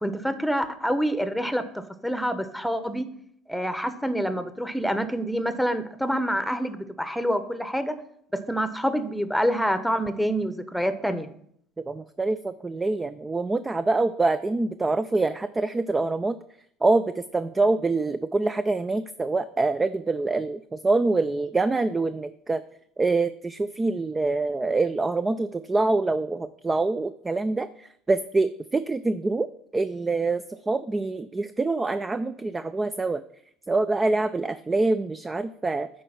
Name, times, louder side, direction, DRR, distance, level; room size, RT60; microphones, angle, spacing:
voice 1, 0.0-3.1 3.5-8.0 8.5-11.3, equal, ahead, 11 dB, 0.9 m, -27 dB
voice 2, 11.9-16.4 16.8-22.6 23.0-29.5 29.7-33.2 33.7-35.9, right 3 dB, 20° right, 12 dB, 0.4 m, -25 dB
8.7 x 4.6 x 5.7 m, 0.69 s
hypercardioid pair, 70°, 0 cm